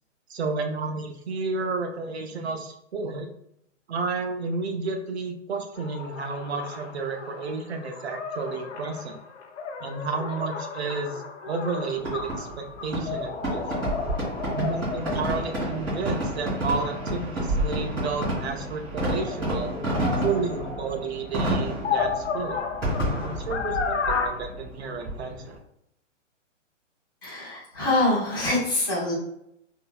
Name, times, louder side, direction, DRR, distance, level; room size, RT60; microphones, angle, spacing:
voice 1, 0.3-3.3 3.9-9.2 9.8-13.9 14.5-19.8 20.2-22.6 23.2-25.6, right 4 dB, 55° right, 4 dB, 0.6 m, -31 dB
sound 1, 5.7-18.5 19.0-24.3, left 5 dB, 65° left, 0.6 m, -34 dB
Fireworks, 12.0-25.6, right 1 dB, 10° right, 1.4 m, -30 dB
voice 2, 27.2-29.1, left 2 dB, 20° left, -6 dB, 0.7 m, -25 dB
3.7 x 2.7 x 2.3 m, 0.77 s
hypercardioid pair, 175°, 38 cm